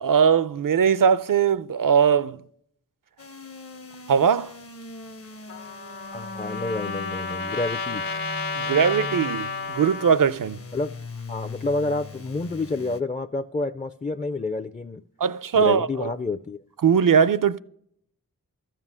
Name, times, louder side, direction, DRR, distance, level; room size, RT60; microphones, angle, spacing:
voice 1, 0.0-2.4 4.1-4.5 8.5-10.6 15.2-15.9 16.8-17.6, right 7 dB, 70° right, 0.5 m, -20 dB
sound 1, 3.2-13.0, left 3 dB, 45° left, 0.8 m, -41 dB
Trumpet, 5.5-10.2, left 4 dB, 85° left, 1.7 m, -31 dB
voice 2, 6.1-8.0 10.7-10.9 11.3-15.0 15.5-16.6, left 3 dB, 20° left, 0.4 m, -29 dB
13.0 x 7.6 x 6.2 m
wide cardioid pair, 70°, 34 cm